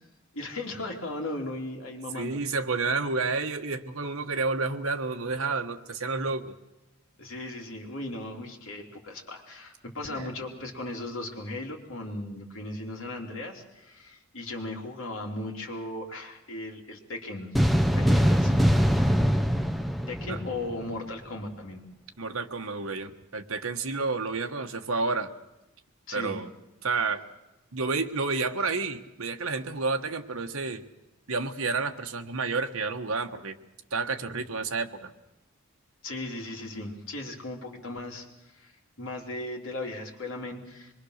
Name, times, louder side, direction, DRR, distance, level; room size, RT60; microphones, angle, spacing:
voice 1, 0.3-2.4 7.2-17.5 17.8-18.5 20.1-21.8 26.1-26.4 36.0-38.7 39.0-40.9, left 2 dB, 65° left, -1 dB, 3.4 m, -37 dB
voice 2, 2.1-6.5 10.1-10.3 20.2-20.4 22.2-25.3 26.1-26.5 26.8-27.2 27.7-30.8 31.3-33.6 33.9-35.1, right 4 dB, 80° right, 5 dB, 1.4 m, -30 dB
sound 1, 17.5-21.0, equal, ahead, 0.8 m, -23 dB
25.0 x 22.0 x 6.6 m, 0.97 s
head